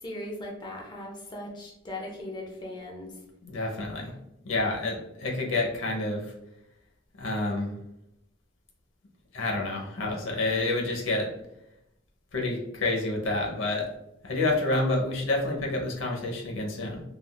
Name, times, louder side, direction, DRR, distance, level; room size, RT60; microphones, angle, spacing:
voice 1, 0.0-3.2, left 1 dB, 25° left, -1 dB, 0.5 m, -38 dB
voice 2, 3.4-4.1 4.4-6.3 7.2-7.8 9.3-11.3 12.3-13.9 14.2-17.0, left 2 dB, 85° left, 0 dB, 0.7 m, -28 dB
3.4 x 2.3 x 2.2 m, 0.85 s
head